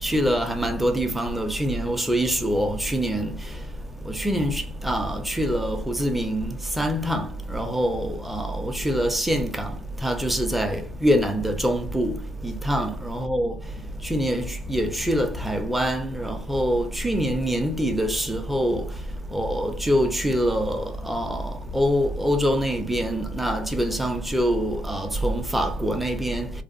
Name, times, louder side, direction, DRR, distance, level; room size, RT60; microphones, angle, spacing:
voice 1, 0.0-3.3 4.0-13.6 14.0-18.9 19.3-26.5, equal, 5° right, 0.4 m, -25 dB
2.6 x 2.1 x 2.4 m
cardioid pair, 140°, 4 cm